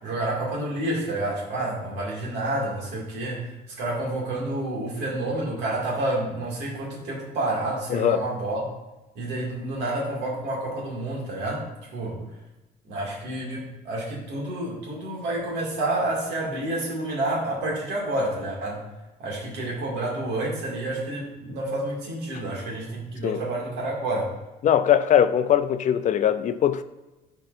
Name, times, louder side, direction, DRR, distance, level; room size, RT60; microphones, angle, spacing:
voice 1, 0.0-8.6 9.1-11.7 11.9-12.3 12.9-18.8 19.2-24.3, right 1 dB, 85° right, 2.3 m, -29 dB
voice 2, 7.9-8.2 23.2-23.4 24.6-26.8, left 9 dB, 45° left, 0.4 m, -21 dB
12.5 x 4.5 x 2.6 m
cardioid pair, 110°, 17 cm